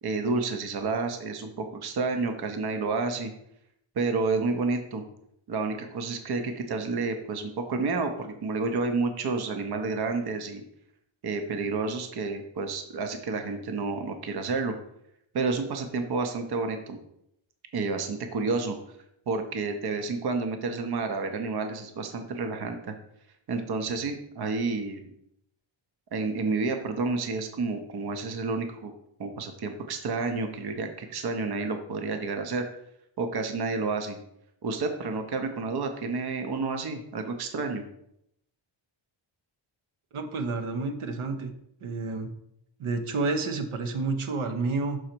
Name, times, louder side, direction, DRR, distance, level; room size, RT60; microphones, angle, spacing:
voice 1, 0.0-3.3 4.0-5.0 5.5-10.6 11.2-14.7 15.3-17.0 17.7-18.8 19.3-22.9 23.5-25.1 26.1-28.9 29.2-32.7 33.2-34.2 34.6-37.8, right 4 dB, 50° right, 6 dB, 0.7 m, -30 dB
voice 2, 40.1-41.5 41.8-42.3 42.8-45.0, right 3 dB, 80° right, 6 dB, 0.9 m, -29 dB
6.4 x 3.9 x 4.4 m, 0.76 s
wide cardioid pair, 135°, 49 cm